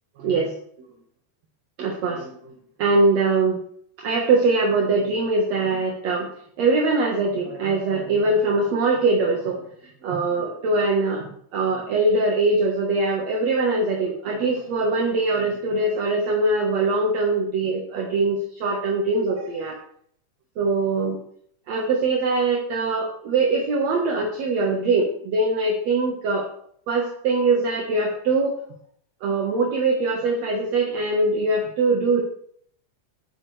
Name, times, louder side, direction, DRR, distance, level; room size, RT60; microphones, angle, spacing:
voice 1, 1.8-2.3 2.8-3.6 4.0-6.3 6.6-9.6 10.0-11.2 11.5-19.8 20.6-21.2 21.7-26.5 26.9-28.5 29.2-32.2, right 3 dB, 65° right, 0 dB, 2.6 m, -22 dB
14.5 x 10.5 x 3.4 m, 0.64 s
omnidirectional pair, 3.5 m